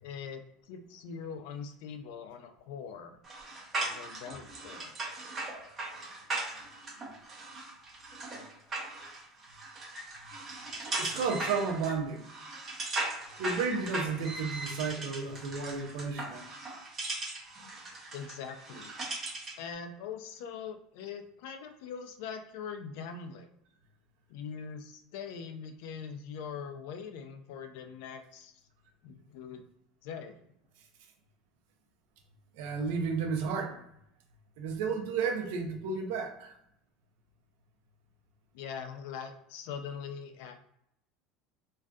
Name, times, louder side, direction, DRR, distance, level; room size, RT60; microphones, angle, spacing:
voice 1, 0.0-3.2 3.8-5.0 18.1-18.9 19.6-23.5 24.3-28.5 29.0-29.7 30.0-30.4 38.5-40.6, left 6 dB, 75° left, 7 dB, 0.4 m, -42 dB
sound 1, 3.2-19.6, right 2 dB, 30° right, 0.9 m, -39 dB
voice 2, 11.0-12.2 13.1-16.5 32.5-33.8 34.6-36.6, right 5 dB, 80° right, 3 dB, 0.6 m, -32 dB
2.6 x 2.3 x 2.2 m, 0.76 s
supercardioid pair, 130°, 0 cm